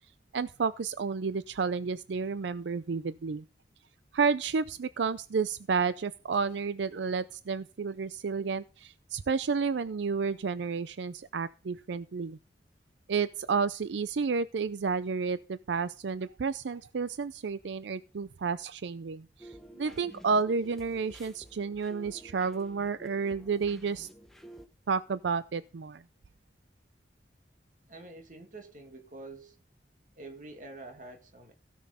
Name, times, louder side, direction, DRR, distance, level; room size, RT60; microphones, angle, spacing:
voice 1, 0.3-3.4 4.1-12.4 13.1-24.1 24.9-26.0, right 5 dB, 80° right, 0.5 m, -31 dB
sound 1, 19.4-24.7, right 1 dB, ahead, 0.9 m, -51 dB
voice 2, 27.9-29.6 30.2-31.5, right 2 dB, 45° right, 2.4 m, -47 dB
16.5 x 6.2 x 5.5 m
head